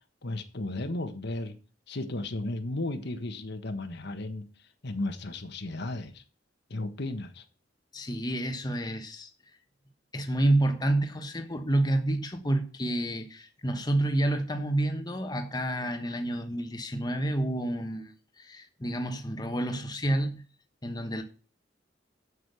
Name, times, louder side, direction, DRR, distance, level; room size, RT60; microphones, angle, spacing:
voice 1, 0.2-1.5 1.9-4.5 4.8-6.2 6.7-7.4, left 2 dB, 65° left, 1.4 m, -34 dB
voice 2, 7.9-9.3 10.1-20.4 20.8-21.2, right 1 dB, 20° left, 1.2 m, -29 dB
8.0 x 7.4 x 8.2 m
head